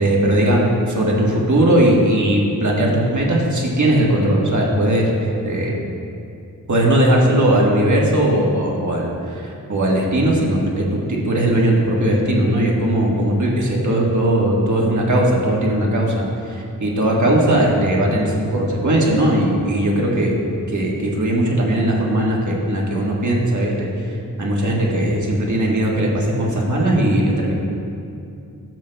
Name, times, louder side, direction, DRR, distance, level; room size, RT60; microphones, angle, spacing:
voice 1, 0.0-5.8 6.7-23.9 24.4-27.5, right 1 dB, 55° right, -2 dB, 1.4 m, -18 dB
12.0 x 7.4 x 2.2 m, 2.6 s
wide cardioid pair, 65°, 36 cm